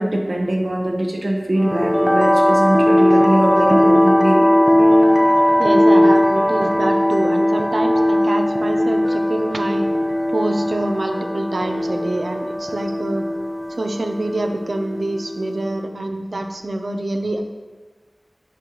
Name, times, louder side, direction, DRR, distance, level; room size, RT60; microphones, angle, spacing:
voice 1, 0.0-4.4, right 1 dB, 65° right, 0 dB, 1.0 m, -21 dB
sound 1, 1.6-15.7, left 1 dB, 10° left, 0.6 m, -18 dB
voice 2, 5.6-9.9 10.3-13.2 13.7-17.4, right 1 dB, 85° right, 5 dB, 0.5 m, -25 dB
9.0 x 3.1 x 3.8 m, 1.4 s
wide cardioid pair, 45°, 0 cm